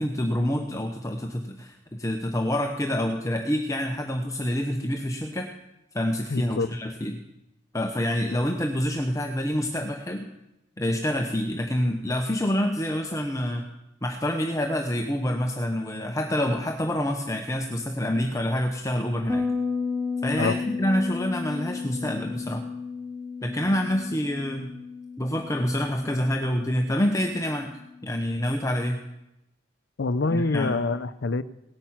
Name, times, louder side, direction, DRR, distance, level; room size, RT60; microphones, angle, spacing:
voice 1, 0.0-5.5 5.9-7.2 7.7-10.3 10.8-13.7 14.0-19.4 20.2-22.6 23.4-24.7 25.2-27.7 28.0-29.0 30.3-30.8, equal, 15° left, 3 dB, 0.8 m, -27 dB
voice 2, 6.3-6.7 8.3-8.4 20.4-20.6 30.0-31.4, left 3 dB, 75° left, 13 dB, 0.6 m, -26 dB
Bass guitar, 19.3-28.7, left 4 dB, 10° right, 2.7 m, -33 dB
18.0 x 9.1 x 5.8 m, 0.89 s
head